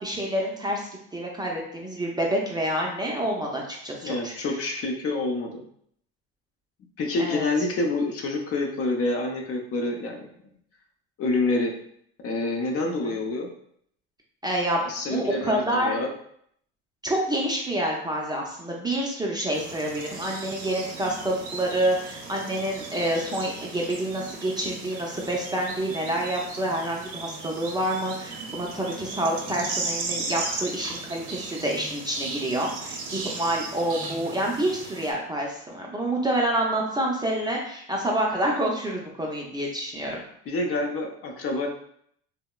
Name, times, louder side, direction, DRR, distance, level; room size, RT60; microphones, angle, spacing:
voice 1, 0.0-4.3 7.2-7.4 12.8-13.2 14.4-14.8 15.1-15.9 17.0-40.2, right 1 dB, 15° right, -2 dB, 0.4 m, -28 dB
voice 2, 4.0-5.6 7.0-10.3 11.2-11.7 12.2-13.5 14.8-16.1 40.5-41.7, left 2 dB, 45° left, 2 dB, 0.6 m, -27 dB
sound 1, 19.5-35.1, right 3 dB, 75° right, 0.6 m, -36 dB
2.8 x 2.0 x 2.2 m, 0.66 s
supercardioid pair, 90°, 32 cm